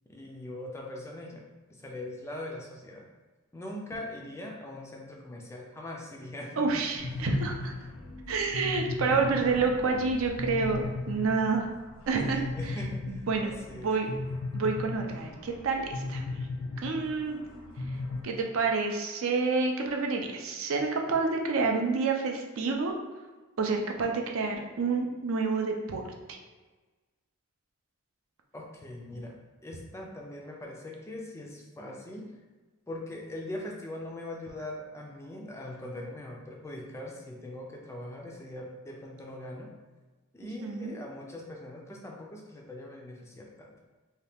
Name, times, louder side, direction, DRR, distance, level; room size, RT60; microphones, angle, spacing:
voice 1, 0.1-1.4 1.7-3.1 3.5-6.8 12.3-13.9 28.5-32.4 32.9-39.7 40.3-43.7, left 1 dB, 15° left, -1 dB, 0.3 m, -41 dB
voice 2, 6.6-7.7 8.3-11.7 12.1-12.4 13.1-14.1 14.5-16.2 16.8-17.4 18.2-22.9 23.6-26.0 26.3-26.4 40.6-41.0, right 4 dB, 65° right, 2 dB, 0.4 m, -28 dB
sound 1, 7.0-18.2, left 3 dB, 80° left, 0.5 m, -37 dB
2.8 x 2.3 x 3.4 m, 1.3 s
head